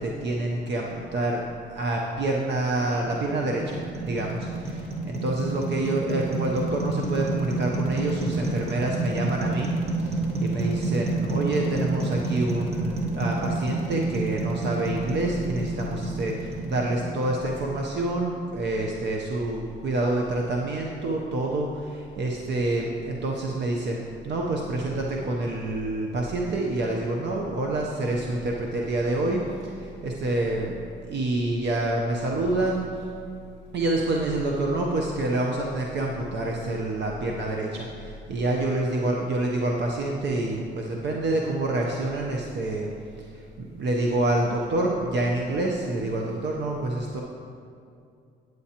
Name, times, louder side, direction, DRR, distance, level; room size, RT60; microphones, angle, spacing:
voice 1, 0.0-1.4 1.7-30.8 31.1-33.1 33.7-42.9 43.2-47.2, right 2 dB, 60° right, -1 dB, 0.8 m, -27 dB
sound 1, 2.8-18.0, right 3 dB, 30° right, 1.5 m, -29 dB
9.3 x 7.9 x 2.9 m, 2.4 s
cardioid pair, 90°, 20 cm